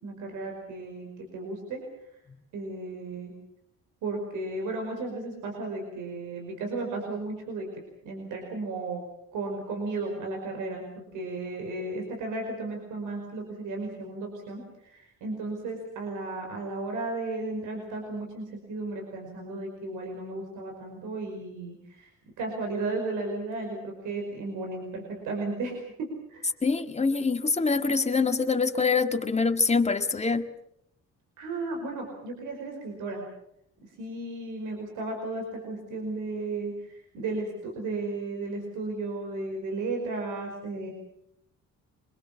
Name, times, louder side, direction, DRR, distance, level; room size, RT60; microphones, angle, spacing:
voice 1, 0.0-1.8 2.5-3.3 4.0-9.0 9.3-10.9 11.1-22.1 22.4-26.5 31.4-33.2 33.8-40.9, right 3 dB, 90° right, 2 dB, 5.2 m, -34 dB
voice 2, 26.6-30.5, left 4 dB, 20° left, 7 dB, 1.9 m, -25 dB
25.5 x 21.5 x 7.3 m, 0.76 s
cardioid pair, 90°, 30 cm